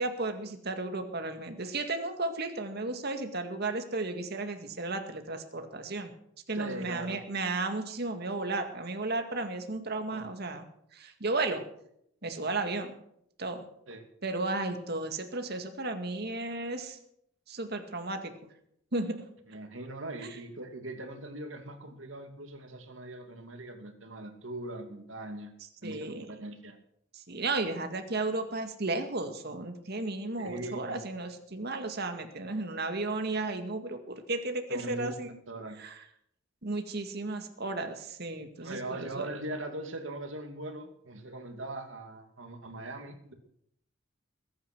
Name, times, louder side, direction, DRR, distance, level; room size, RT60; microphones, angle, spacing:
voice 1, 0.0-6.1 6.5-10.6 10.9-11.6 12.2-12.9 13.4-13.7 14.2-17.0 17.5-18.3 18.9-19.2 25.8-26.3 27.1-35.4 35.8-36.0 36.6-39.3, right 2 dB, 55° right, 6 dB, 2.0 m, -34 dB
voice 2, 6.5-7.2 10.1-10.3 13.9-14.0 19.5-25.5 25.8-26.8 30.4-31.0 34.7-35.1 35.5-35.8 38.6-43.3, right 1 dB, 80° right, 5 dB, 2.6 m, -40 dB
20.5 x 9.8 x 6.2 m, 0.73 s
head